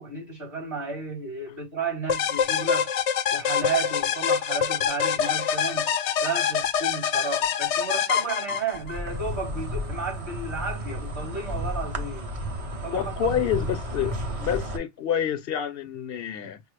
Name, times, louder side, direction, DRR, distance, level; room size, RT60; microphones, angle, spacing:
voice 1, 0.0-2.9 3.3-5.9 6.2-12.3 12.8-13.3, right 4 dB, 70° right, 3.7 m, -32 dB
sound 1, 2.1-9.0, left 8 dB, 85° left, 0.9 m, -25 dB
Insect, 8.7-14.8, equal, 35° right, 0.7 m, -32 dB
voice 2, 12.9-16.6, left 9 dB, 60° left, 0.8 m, -28 dB
5.4 x 2.0 x 3.1 m
omnidirectional pair, 1.2 m